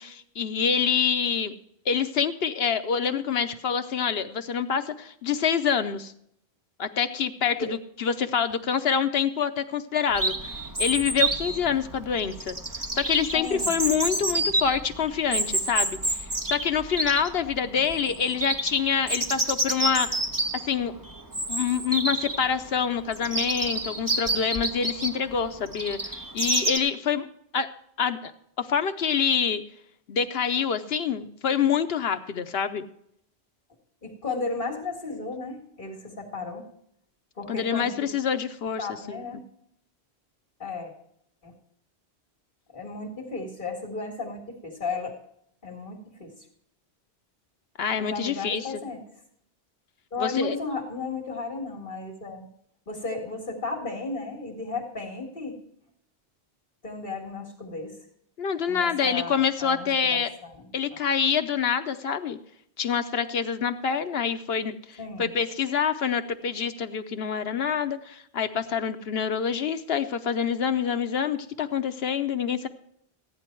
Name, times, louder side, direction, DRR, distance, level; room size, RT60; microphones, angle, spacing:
voice 1, 0.0-1.5 1.9-6.1 6.8-12.6 12.9-20.1 20.7-20.9 21.5-27.3 27.5-27.7 28.0-28.3 28.6-29.6 30.1-32.8 37.5-38.9 47.8-48.7 50.2-50.5 58.4-60.3 60.7-62.4 62.8-72.7, left 7 dB, 70° left, 10 dB, 1.0 m, -26 dB
Chirp tweet, 10.1-26.8, right 2 dB, 20° right, 0.9 m, -29 dB
voice 2, 13.3-13.7 34.0-36.6 37.4-38.1 38.8-39.4 40.6-40.9 41.4-41.5 42.7-45.2 45.6-46.5 48.0-49.0 50.1-52.5 52.9-55.6 56.8-58.0 58.7-60.5 60.9-61.0 65.0-65.3, left 3 dB, 50° left, 0 dB, 2.1 m, -34 dB
15.0 x 10.5 x 4.5 m, 0.72 s
omnidirectional pair, 1.1 m